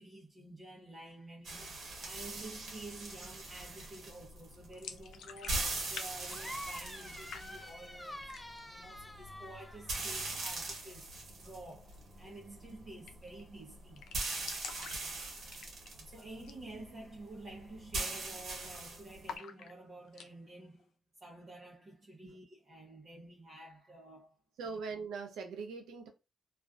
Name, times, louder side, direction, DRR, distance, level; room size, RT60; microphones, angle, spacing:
voice 1, 0.0-8.3 8.7-14.0 16.0-20.9 21.2-24.3 24.7-24.8, right 2 dB, 30° right, 0.7 m, -50 dB
sound 1, 1.4-19.3, right 2 dB, 65° right, 1.1 m, -42 dB
sound 2, 4.7-6.1 6.3-7.0 7.3-7.9 8.2-8.7 9.1-9.2 9.5-10.1 11.8-12.0 12.3-12.4 12.6-12.7 13.1-13.4 13.7-13.8 14.0-16.0 16.4-16.6 17.0-17.1 17.6-17.9 18.2-18.8 19.2-20.3, left 6 dB, 85° left, 0.4 m, -48 dB
sound 3, 6.3-10.7, left 1 dB, 10° left, 0.4 m, -48 dB
voice 2, 24.6-26.1, right 4 dB, 90° right, 0.7 m, -41 dB
2.4 x 2.4 x 2.3 m
cardioid pair, 95°, 0 cm